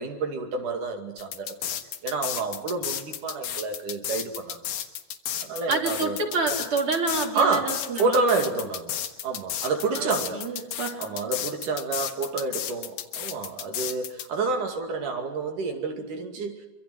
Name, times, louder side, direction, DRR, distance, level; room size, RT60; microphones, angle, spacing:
voice 1, 0.0-1.8 2.0-4.6 5.4-6.2 7.4-10.5 11.0-16.5, right 3 dB, 65° right, 4 dB, 3.9 m, -29 dB
sound 1, 1.2-14.3, left 10 dB, 75° left, 3.1 m, -33 dB
voice 2, 5.7-8.2 10.0-11.0, right 3 dB, 40° right, 2 dB, 4.1 m, -28 dB
25.5 x 25.0 x 7.9 m, 1.1 s
omnidirectional pair, 4.1 m